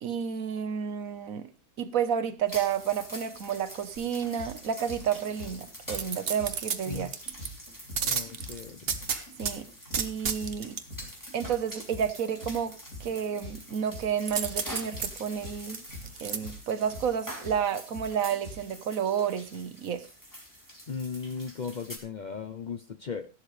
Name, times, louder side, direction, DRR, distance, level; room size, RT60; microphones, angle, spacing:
voice 1, 0.0-1.5 1.8-7.1 9.4-9.7 10.0-10.8 11.3-15.8 16.2-20.0, right 8 dB, 60° right, 1.3 m, -31 dB
sound 1, 2.5-22.0, equal, 10° left, 2.8 m, -46 dB
sound 2, 4.0-18.7, left 1 dB, 50° left, 5.1 m, -44 dB
sound 3, 5.9-7.5 8.0-9.5 9.9-10.8 14.3-16.4 16.8-16.9, right 6 dB, 45° right, 1.0 m, -32 dB
voice 2, 8.0-8.9 20.9-23.3, left 5 dB, 65° left, 0.4 m, -37 dB
14.5 x 11.5 x 3.2 m
omnidirectional pair, 1.7 m